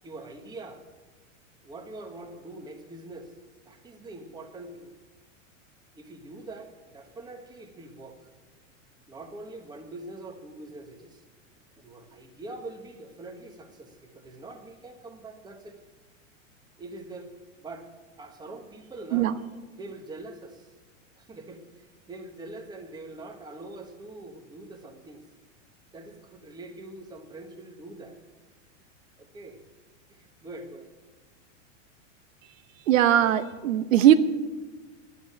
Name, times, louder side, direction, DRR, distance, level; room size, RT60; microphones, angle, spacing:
voice 1, 0.0-0.8 1.6-3.3 3.6-4.9 5.9-8.3 9.1-11.2 11.7-15.8 16.8-17.3 17.6-17.9 18.2-19.4 19.7-20.7 21.2-25.2 25.9-28.2 29.2-29.6 30.1-30.9, right 2 dB, 10° right, 3 dB, 1.3 m, -43 dB
voice 2, 32.9-34.1, right 11 dB, 90° right, 11 dB, 1.0 m, -19 dB
11.0 x 9.0 x 8.7 m, 1.3 s
supercardioid pair, 145°, 38 cm